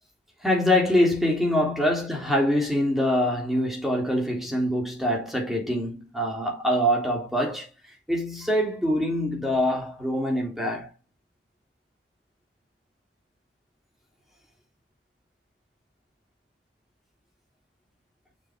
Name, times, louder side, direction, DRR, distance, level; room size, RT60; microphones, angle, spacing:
voice 1, 0.4-7.7 8.1-10.9, equal, ahead, 3.5 m, -24 dB
7.0 x 6.9 x 3.9 m
head